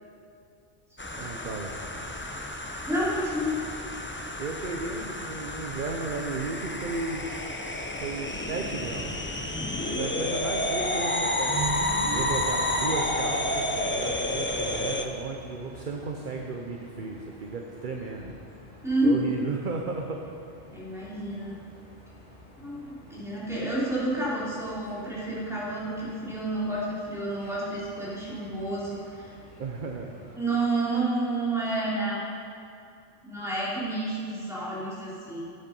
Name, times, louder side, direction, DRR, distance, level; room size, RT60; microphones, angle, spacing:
sound 1, 1.0-15.1, left 1 dB, 15° left, 0.5 m, -30 dB
voice 1, 1.2-1.7 4.4-9.3 9.9-18.3 19.0-20.2 29.6-30.1, right 4 dB, 45° right, 1 dB, 0.9 m, -34 dB
voice 2, 2.8-3.6 9.7-10.3 18.8-19.2 20.7-21.6 22.6-29.3 30.3-32.3 33.2-35.5, right 2 dB, ahead, -8 dB, 3.5 m, -30 dB
sound 2, 11.4-14.0, right 2 dB, 30° right, 3.8 m, -36 dB
sound 3, 12.6-30.4, left 1 dB, 30° left, 3.0 m, -51 dB
13.0 x 8.6 x 5.4 m, 2.4 s
omnidirectional pair, 1.3 m